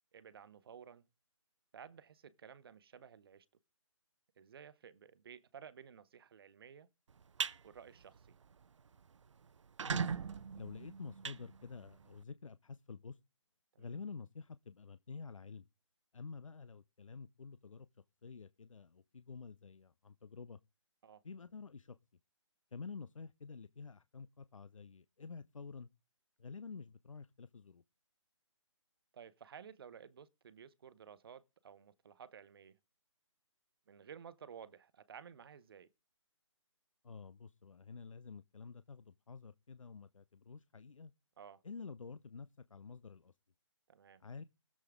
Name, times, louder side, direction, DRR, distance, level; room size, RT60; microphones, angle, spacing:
voice 1, 0.1-1.1 1.7-3.5 4.4-6.9 7.6-8.4 13.7-13.9 21.0-21.2 29.1-32.8 33.9-35.9 41.4-41.6 43.9-44.2, right 7 dB, 50° right, 0.9 m, -54 dB
sound 1, 7.1-7.6 8.0-8.3 8.6-8.7 8.9-9.0 9.6-12.1, right 6 dB, 70° right, 0.6 m, -39 dB
voice 2, 9.8-10.2 10.5-13.2 13.8-15.7 16.1-17.9 18.2-20.6 21.2-22.0 22.7-25.9 26.4-27.8 37.0-41.1 41.6-43.3 44.2-44.4, left 5 dB, 90° left, 0.6 m, -49 dB
20.0 x 7.5 x 3.6 m
figure-of-eight pair, 155°, 16 cm